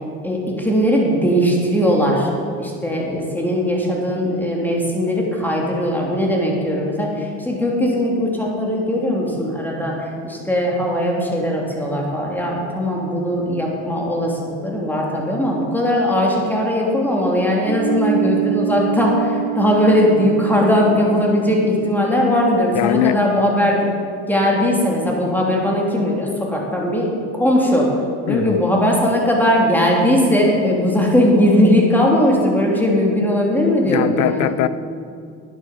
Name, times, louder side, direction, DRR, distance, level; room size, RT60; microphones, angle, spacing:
voice 1, 0.2-2.3 2.6-23.9 24.3-27.9 28.3-34.5, equal, 5° left, -2 dB, 3.2 m, -19 dB
sound 1, 17.7-23.2, right 14 dB, 30° right, 2.4 m, -27 dB
voice 2, 22.7-23.2 28.3-28.6 33.8-34.7, left 13 dB, 60° left, 15 dB, 0.7 m, -20 dB
11.5 x 9.0 x 7.3 m, 2.3 s
supercardioid pair, 95°, 32 cm